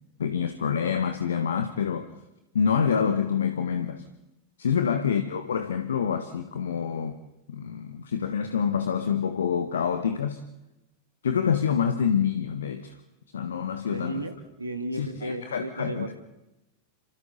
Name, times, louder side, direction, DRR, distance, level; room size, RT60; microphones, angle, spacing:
voice 1, 0.2-2.1 2.5-4.0 4.6-7.1 7.5-10.4 11.2-12.9 13.3-14.2 14.9-16.1, left 7 dB, 65° left, 1.4 m, -27 dB
voice 2, 13.9-16.1, right 2 dB, 80° right, 2.2 m, -34 dB
29.5 x 27.5 x 4.0 m
figure-of-eight pair, 90°, 0 cm